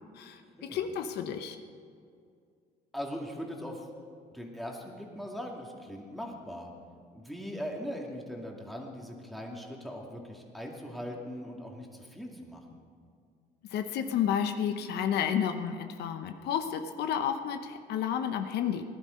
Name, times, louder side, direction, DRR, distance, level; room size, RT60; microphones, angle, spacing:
voice 1, 0.1-1.6 13.7-18.8, left 8 dB, 75° left, 7 dB, 0.9 m, -31 dB
voice 2, 2.9-3.9 4.3-6.7 7.1-12.8, equal, ahead, -1 dB, 2.3 m, -40 dB
18.5 x 11.0 x 5.2 m, 2.3 s
cardioid pair, 110°, 17 cm